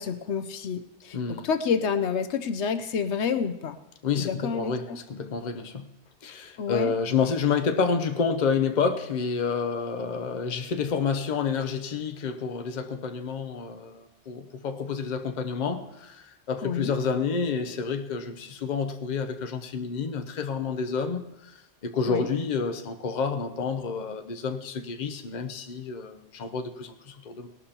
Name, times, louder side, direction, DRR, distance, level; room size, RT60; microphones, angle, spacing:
voice 1, 0.0-3.8 4.2-5.0 6.6-6.9 16.6-16.9 22.1-22.3, left 6 dB, 80° left, 0.9 m, -29 dB
voice 2, 1.1-1.5 4.0-5.9 6.2-21.5 21.8-27.5, left 5 dB, 45° left, 0.8 m, -29 dB
18.5 x 12.0 x 2.9 m
omnidirectional pair, 1.2 m